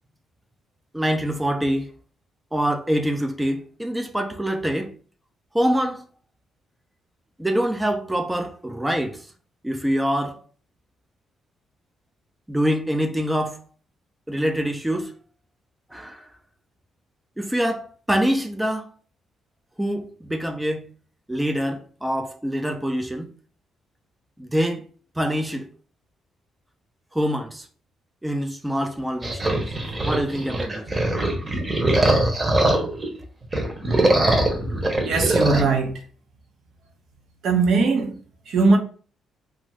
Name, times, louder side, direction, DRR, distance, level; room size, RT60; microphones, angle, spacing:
voice 1, 0.9-1.9 2.5-4.9 5.5-6.0 7.4-9.3 9.6-10.4 12.5-13.6 14.3-15.1 15.9-16.3 17.4-18.9 19.8-20.9 21.3-23.3 24.4-24.9 25.2-25.7 27.1-27.7 28.2-29.7 30.0-30.9, equal, 10° right, 0.4 m, -25 dB
sound 1, 29.2-33.1 33.4-35.6, right 1 dB, 25° right, 0.8 m, -22 dB
voice 2, 35.0-36.0 37.4-38.2 38.5-38.8, right 4 dB, 70° right, 0.7 m, -20 dB
2.6 x 2.4 x 3.0 m
cardioid pair, 90°, 0 cm